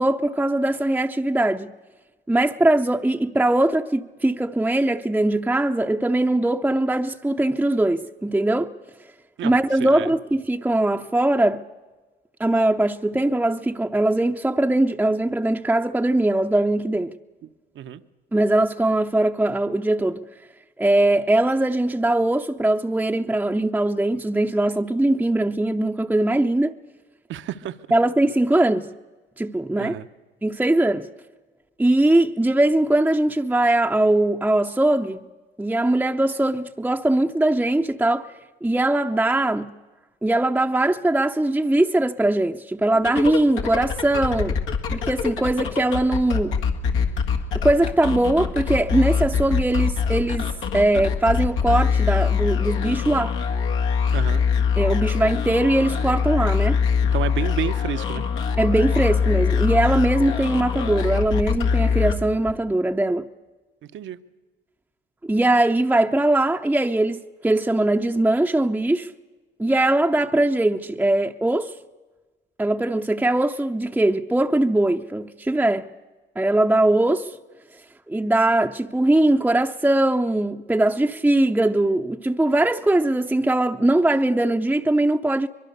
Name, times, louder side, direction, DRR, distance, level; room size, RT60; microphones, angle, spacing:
voice 1, 0.0-1.7 2.3-8.7 9.4-11.6 12.4-17.1 18.3-20.2 20.8-26.7 27.9-28.9 29.4-30.0 30.4-31.1 31.8-35.3 35.6-38.3 38.6-39.7 40.2-44.6 44.9-46.5 47.5-53.4 54.8-56.8 58.6-63.3 65.2-69.1 69.6-71.7 72.6-75.9 76.4-77.4 78.1-85.5, right 1 dB, 10° right, 0.6 m, -21 dB
voice 2, 27.3-27.8 29.8-30.1 54.1-54.4 57.1-58.2 63.9-64.2, right 10 dB, 75° right, 0.9 m, -30 dB
sound 1, 42.9-62.7, left 6 dB, 90° left, 1.8 m, -23 dB
23.5 x 22.5 x 6.7 m
cardioid pair, 90°, 20 cm